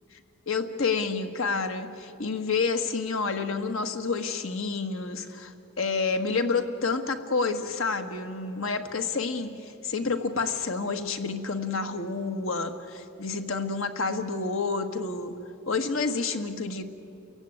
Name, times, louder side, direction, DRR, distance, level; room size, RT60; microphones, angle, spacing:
voice 1, 0.5-15.4 15.7-16.8, left 4 dB, 90° left, 7 dB, 1.6 m, -29 dB
29.5 x 16.0 x 9.3 m, 2.9 s
head